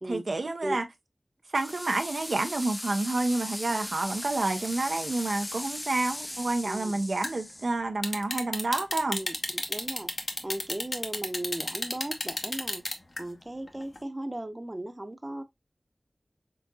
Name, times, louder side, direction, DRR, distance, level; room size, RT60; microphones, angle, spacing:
voice 1, 0.1-0.8 1.5-9.2, right 2 dB, 75° right, 0.5 m, -29 dB
sound 1, 1.5-7.7, left 1 dB, 20° left, 0.4 m, -38 dB
voice 2, 6.6-7.0 9.1-10.1 10.4-12.8 13.2-15.4, right 1 dB, 30° right, 0.7 m, -37 dB
sound 2, 7.2-7.4 8.0-13.2 13.7-14.0, left 2 dB, 60° left, 0.8 m, -31 dB
4.0 x 3.7 x 2.3 m
wide cardioid pair, 45°, 0 cm